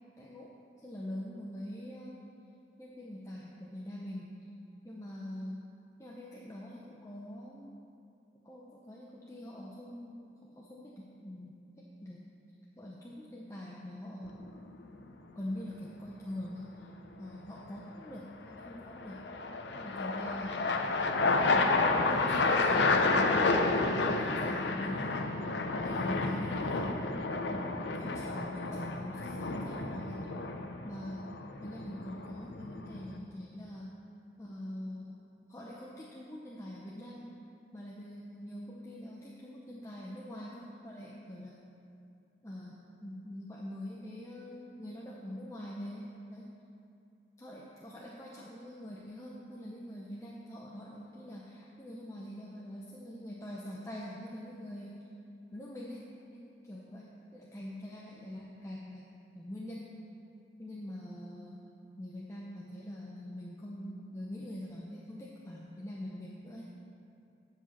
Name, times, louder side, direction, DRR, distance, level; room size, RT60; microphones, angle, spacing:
voice 1, 0.2-2.3 2.8-4.4 4.8-5.6 6.0-7.8 8.4-12.3 12.8-14.5 15.3-16.9 17.2-19.3 19.7-21.0 21.5-25.2 25.8-26.9 27.5-30.3 30.8-31.3 31.6-33.9 34.4-35.2 35.5-37.3 37.7-41.6 42.4-46.5 47.4-55.0 55.5-56.0 56.3-59.1 59.3-60.0 60.6-61.6 62.0-66.7, left 1 dB, 15° left, -5 dB, 0.7 m, -44 dB
sound 1, 14.3-14.8 18.6-33.2, left 3 dB, 85° left, 0.7 m, -30 dB
10.5 x 4.8 x 7.3 m, 2.5 s
head